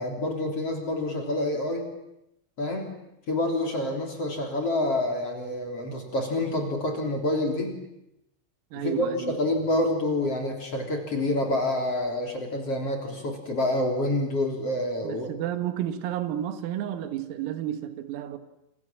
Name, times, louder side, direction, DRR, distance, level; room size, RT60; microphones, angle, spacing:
voice 1, 0.0-1.9 2.6-2.9 3.3-7.8 8.7-15.3, left 1 dB, 30° left, 3.8 m, -27 dB
voice 2, 8.7-9.3 15.0-18.4, right 11 dB, 85° right, 4.3 m, -31 dB
28.5 x 27.0 x 7.5 m
omnidirectional pair, 5.9 m